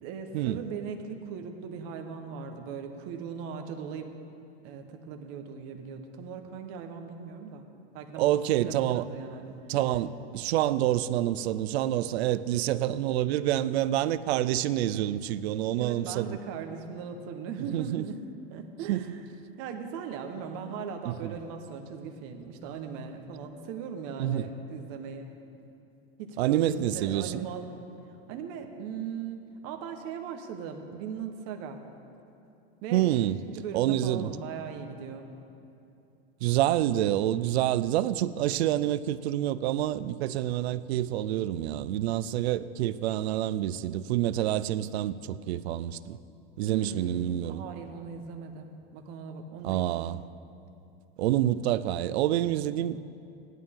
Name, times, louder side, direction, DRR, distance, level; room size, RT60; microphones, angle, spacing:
voice 1, 0.0-4.1 4.6-7.7 7.9-9.6 15.8-18.2 18.5-19.2 19.6-25.3 26.2-27.7 28.3-31.8 32.8-33.1 33.5-35.3 46.6-50.1, right 6 dB, 45° right, 1.1 m, -39 dB
voice 2, 8.2-9.1 9.7-16.4 17.7-18.0 18.9-19.0 21.1-21.3 24.2-24.5 26.4-27.5 32.9-33.4 33.7-34.3 36.4-46.2 46.6-47.6 49.6-50.2 51.2-53.0, right 13 dB, 80° right, 0.5 m, -27 dB
16.0 x 11.0 x 3.7 m
supercardioid pair, 145°, 31 cm